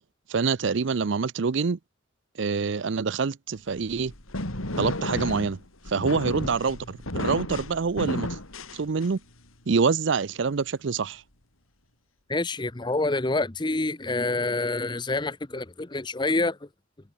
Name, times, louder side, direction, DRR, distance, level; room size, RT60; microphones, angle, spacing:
voice 1, 0.3-1.8 2.4-4.1 4.8-5.6 5.9-8.4 8.7-9.2 9.7-11.2, right 5 dB, 60° right, 0.5 m, -26 dB
sound 1, 3.7-9.4, left 1 dB, 85° left, 5.5 m, -33 dB
voice 2, 12.3-16.7, left 2 dB, 20° left, 0.7 m, -27 dB
head